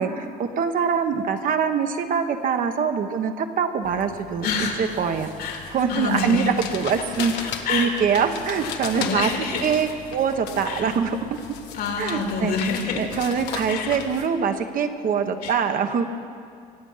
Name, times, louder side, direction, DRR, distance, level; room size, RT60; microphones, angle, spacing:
voice 1, 0.0-4.5 4.8-5.3 5.7-9.3 9.6-11.2 12.0-12.5 12.9-16.0, right 6 dB, 55° right, 7 dB, 1.1 m, -24 dB
sound 1, 3.8-14.3, left 7 dB, 85° left, 1.3 m, -37 dB
voice 2, 4.4-4.9 5.4-6.5 7.2-7.9 8.6-9.7 10.7-10.9 11.7-13.0 13.7-14.0 15.4-15.5, left 4 dB, 70° left, 2 dB, 2.5 m, -28 dB
23.5 x 8.9 x 5.7 m, 2.3 s
cardioid pair, 110°, 17 cm